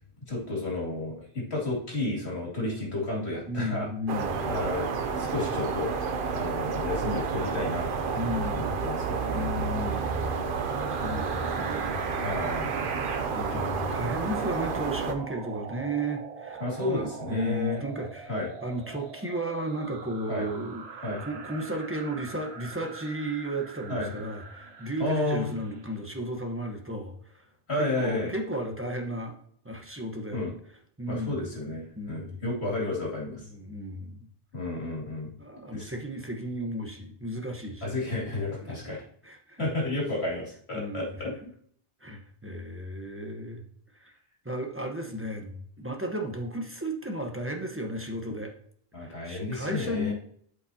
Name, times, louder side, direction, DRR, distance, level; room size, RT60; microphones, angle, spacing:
voice 1, 0.3-3.9 4.5-5.9 6.3-9.5 12.1-12.8 16.6-17.8 18.3-18.5 20.3-20.5 21.0-21.2 23.9-24.1 25.0-25.5 27.7-28.3 30.3-30.5 31.1-33.4 34.5-35.3 35.7-35.9 37.8-39.0 39.6-41.3 48.9-50.1, left 2 dB, 90° left, -4 dB, 2.9 m, -32 dB
voice 2, 3.5-4.4 8.1-8.7 9.3-10.4 11.0-11.9 13.3-18.3 18.6-27.5 27.8-29.4 29.6-30.4 31.0-31.4 32.0-32.4 33.5-34.3 35.4-37.9 38.6-38.9 39.2-39.7 40.7-41.5 42.0-43.6 44.0-44.2 44.4-48.5 49.0-50.1, right 1 dB, 15° right, 2 dB, 1.0 m, -34 dB
sound 1, 4.1-15.1, right 5 dB, 60° right, 0.8 m, -30 dB
sound 2, 10.2-25.9, right 5 dB, 75° right, 1.1 m, -41 dB
12.0 x 5.3 x 2.8 m, 0.62 s
omnidirectional pair, 1.1 m